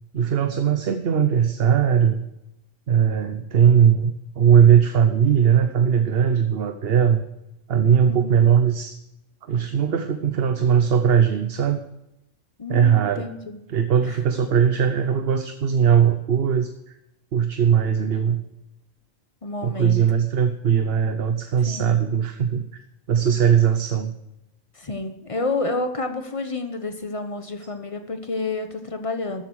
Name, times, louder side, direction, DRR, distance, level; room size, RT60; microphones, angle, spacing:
voice 1, 0.1-2.2 2.9-7.2 7.7-9.0 9.4-11.8 12.7-13.3 13.7-16.7 17.3-18.4 19.6-22.7 23.1-24.2, right 8 dB, 55° right, 9 dB, 0.9 m, -19 dB
voice 2, 8.0-8.5 12.6-13.6 14.1-14.2 19.4-20.0 21.7-22.0 24.7-29.4, left 3 dB, 25° left, 6 dB, 1.2 m, -29 dB
13.5 x 7.9 x 6.3 m, 0.88 s
omnidirectional pair, 1.3 m